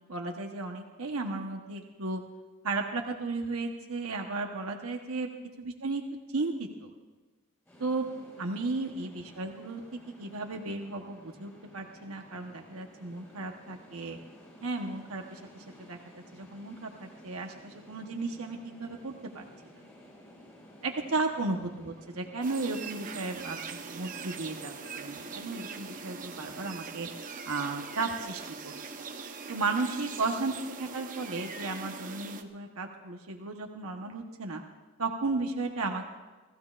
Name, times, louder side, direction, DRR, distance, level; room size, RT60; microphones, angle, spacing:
voice 1, 0.1-2.2 2.6-5.3 5.6-6.0 6.3-6.9 7.8-8.1 8.4-14.2 14.6-16.0 16.3-19.4 20.8-27.1 27.5-28.7 29.5-34.6 35.0-36.1, right 3 dB, 80° right, 3 dB, 1.1 m, -34 dB
sound 1, 7.7-27.2, equal, 10° left, 6.6 m, -54 dB
sound 2, 22.4-32.4, right 5 dB, 40° right, 0.9 m, -42 dB
30.0 x 15.0 x 2.5 m, 1.2 s
head